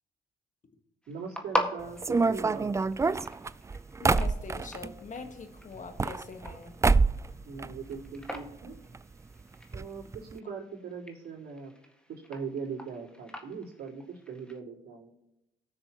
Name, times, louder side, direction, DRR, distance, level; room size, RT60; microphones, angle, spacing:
sound 1, 1.0-14.6, equal, 5° left, 1.7 m, -41 dB
voice 1, 1.1-2.7 7.4-8.8 9.7-10.0 10.3-11.7 12.1-15.1, right 5 dB, 65° right, -5 dB, 3.8 m, -40 dB
sound 2, 2.0-4.9 5.8-6.6 6.8-7.3 7.6-8.4 8.6-8.7 8.9-9.0 9.7-9.8 10.1-10.3, right 4 dB, 15° right, 0.3 m, -26 dB
voice 2, 4.0-6.7, left 5 dB, 45° left, 6 dB, 1.5 m, -42 dB
19.0 x 6.3 x 3.0 m, 0.89 s
supercardioid pair, 55°, 18 cm